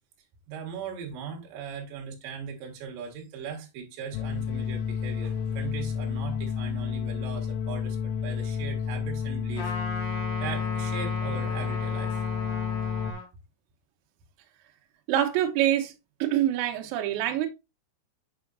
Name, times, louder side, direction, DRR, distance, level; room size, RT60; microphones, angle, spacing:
voice 1, 0.5-9.7 10.4-12.2, right 6 dB, 60° right, 2.6 m, -39 dB
sound 1, 4.1-13.1, left 7 dB, 80° left, 2.9 m, -30 dB
Trumpet, 9.6-13.3, left 1 dB, 65° left, 2.1 m, -37 dB
voice 2, 15.1-15.9 16.2-17.5, right 12 dB, 75° right, 3.0 m, -25 dB
6.9 x 5.6 x 2.5 m
omnidirectional pair, 5.9 m